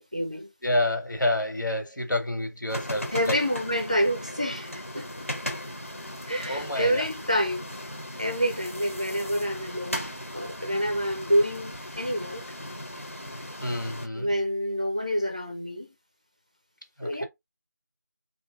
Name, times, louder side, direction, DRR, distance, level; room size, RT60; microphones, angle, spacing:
voice 1, 0.0-0.5 3.1-5.3 6.3-7.7 8.2-12.4 14.1-15.9 17.0-17.2, equal, 20° right, 0.5 m, -28 dB
voice 2, 0.6-3.4 6.0-6.1 6.5-7.1 13.6-14.3 17.0-17.2, left 1 dB, 85° left, 1.8 m, -28 dB
sound 1, 2.7-14.1, left 1 dB, 45° left, 1.1 m, -37 dB
3.2 x 2.7 x 3.8 m
figure-of-eight pair, 175°, 10 cm